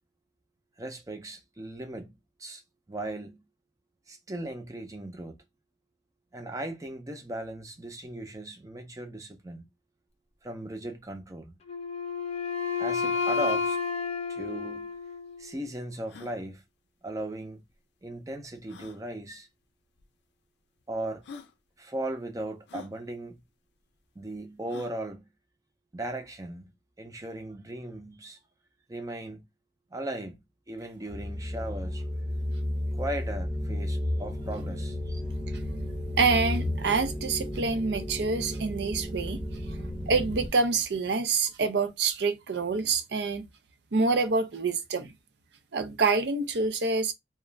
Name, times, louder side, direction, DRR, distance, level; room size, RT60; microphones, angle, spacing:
voice 1, 0.8-2.6 2.9-3.4 4.1-5.4 6.3-9.7 10.4-11.6 12.8-13.8 14.3-14.9 15.4-16.6 17.0-17.6 18.0-19.5 20.9-21.3 21.8-23.4 24.2-25.3 25.9-26.7 27.0-28.4 28.9-29.5 29.9-30.4 30.7-32.1 32.9-35.2, right 1 dB, 20° right, 0.5 m, -37 dB
Wind instrument woodwind instrument, 11.7-15.6, left 5 dB, 35° left, 0.6 m, -31 dB
sound 1, 14.5-14.6 14.8-14.9 15.4-15.5 16.0-16.4 17.7-17.8 18.7-19.0 20.0-20.1 20.8-20.9 21.2-21.5 22.7-22.9 24.7-25.0, left 5 dB, 80° left, 0.4 m, -46 dB
sound 2, 31.1-40.5, left 1 dB, 40° right, 0.9 m, -33 dB
voice 2, 36.2-39.4 40.1-43.5 43.9-45.1 45.7-47.1, right 4 dB, 70° right, 0.5 m, -26 dB
2.4 x 2.2 x 3.1 m
head